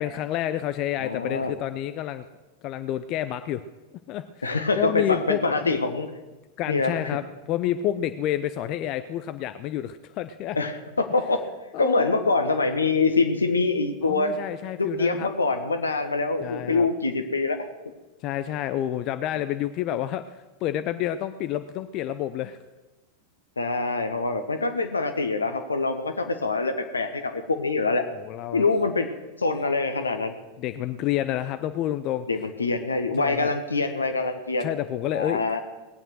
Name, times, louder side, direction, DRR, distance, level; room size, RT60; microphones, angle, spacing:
voice 1, 0.0-2.2 2.6-3.6 4.1-5.8 6.6-10.6 11.7-12.1 14.0-15.3 16.4-16.9 18.2-22.6 28.1-28.6 30.6-32.3 33.2-33.5 34.6-35.4, left 12 dB, 40° left, 11 dB, 0.6 m, -29 dB
voice 2, 1.0-1.5 4.4-6.1 6.7-6.9 10.5-11.4 11.8-14.3 15.0-17.6 23.6-28.0 28.5-29.1 29.4-30.3 32.3-34.7 35.1-35.6, left 3 dB, 75° left, 7 dB, 1.3 m, -25 dB
19.0 x 8.9 x 6.3 m, 1.2 s
figure-of-eight pair, 90°, 0 cm